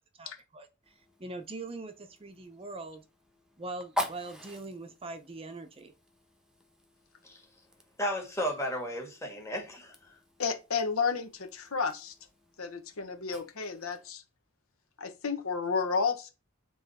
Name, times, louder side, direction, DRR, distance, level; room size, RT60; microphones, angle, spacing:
voice 1, 0.2-0.9 1.2-3.0 3.6-5.9, right 2 dB, 25° right, 0.6 m, -42 dB
Fire, 0.8-14.1, left 1 dB, 5° right, 0.9 m, -45 dB
voice 2, 8.0-10.1, equal, 15° left, 1.6 m, -34 dB
voice 3, 10.4-12.1 12.6-14.2 15.0-16.3, left 5 dB, 90° left, 1.0 m, -31 dB
7.3 x 3.1 x 4.1 m
head